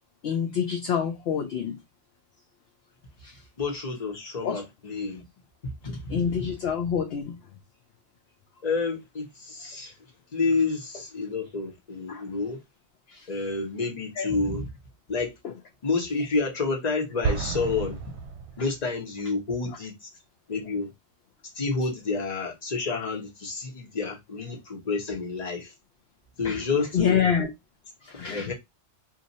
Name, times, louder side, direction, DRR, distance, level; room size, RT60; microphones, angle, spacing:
voice 1, 0.2-1.8 3.2-3.4 4.4-4.6 6.1-7.4 12.1-12.2 13.1-13.3 14.2-14.3 15.4-15.5 26.4-26.6 26.9-27.5 28.0-28.5, left 7 dB, 60° left, 0.8 m, -27 dB
voice 2, 3.6-5.2 5.6-6.5 8.6-9.9 10.3-12.6 13.3-14.7 15.1-15.4 15.8-18.1 18.6-20.1 20.5-20.9 21.5-25.7 26.4-27.3 28.3-28.5, left 4 dB, 35° left, 1.1 m, -29 dB
Explosion, 17.2-19.1, right 5 dB, 65° right, 0.9 m, -31 dB
2.7 x 2.5 x 3.9 m
omnidirectional pair, 1.3 m